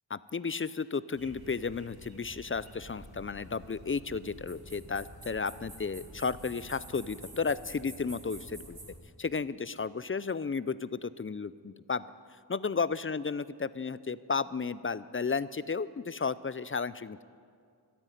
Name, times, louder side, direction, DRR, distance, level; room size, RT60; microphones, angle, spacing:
voice 1, 0.1-8.8 9.2-12.1 12.5-17.2, left 5 dB, 30° left, 17 dB, 0.4 m, -33 dB
sound 1, 1.1-9.0, right 1 dB, 55° right, 1.6 m, -49 dB
13.5 x 9.2 x 9.1 m, 2.2 s
wide cardioid pair, 40°, 43 cm